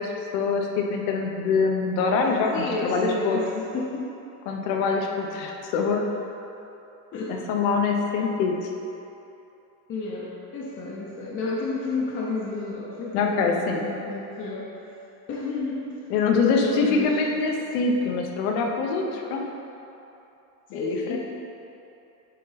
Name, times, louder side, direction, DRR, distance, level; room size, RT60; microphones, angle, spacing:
voice 1, 0.0-3.4 4.5-6.0 7.3-8.7 13.1-13.9 16.1-19.5 20.7-21.2, left 4 dB, 90° left, 1 dB, 1.1 m, -24 dB
voice 2, 2.5-4.1 7.1-7.4 9.9-14.6 15.3-16.0 16.4-17.2 20.7-21.2, left 3 dB, 30° left, -4 dB, 0.7 m, -31 dB
10.0 x 3.8 x 4.0 m, 2.9 s
cardioid pair, 170°, 42 cm